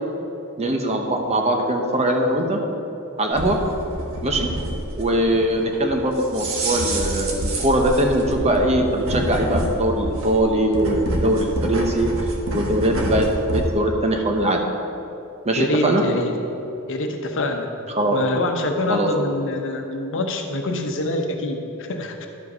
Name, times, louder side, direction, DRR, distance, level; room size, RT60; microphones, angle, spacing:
voice 1, 0.6-2.6 3.2-3.6 4.2-4.5 5.0-12.1 12.5-14.7 15.4-16.0 17.9-18.2 18.9-19.1, right 1 dB, 30° right, 2 dB, 0.8 m, -21 dB
sound 1, 3.3-13.7, right 1 dB, 65° right, 1.3 m, -27 dB
voice 2, 15.6-16.3 16.9-17.7 18.1-22.3, left 1 dB, 60° left, 4 dB, 1.0 m, -25 dB
11.5 x 5.3 x 5.5 m, 2.9 s
head